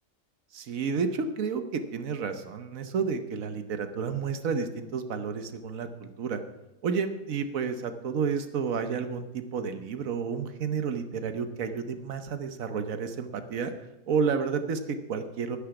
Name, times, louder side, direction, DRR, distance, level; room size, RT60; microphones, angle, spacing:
voice 1, 0.5-6.4 6.8-13.7 14.1-15.6, right 5 dB, 70° right, 8 dB, 1.3 m, -31 dB
10.0 x 9.7 x 5.9 m, 0.98 s
omnidirectional pair, 1.5 m